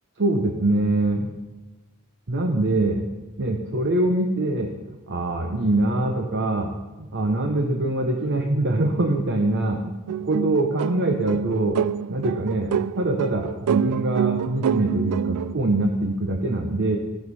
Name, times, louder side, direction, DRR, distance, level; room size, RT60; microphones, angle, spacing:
voice 1, 0.2-1.3 2.3-3.0 3.4-6.7 7.0-11.8 12.1-17.0, right 2 dB, 55° right, 3 dB, 1.0 m, -24 dB
sound 1, 10.1-15.5, right 8 dB, 80° right, 0.3 m, -26 dB
16.0 x 6.3 x 5.5 m, 1.2 s
head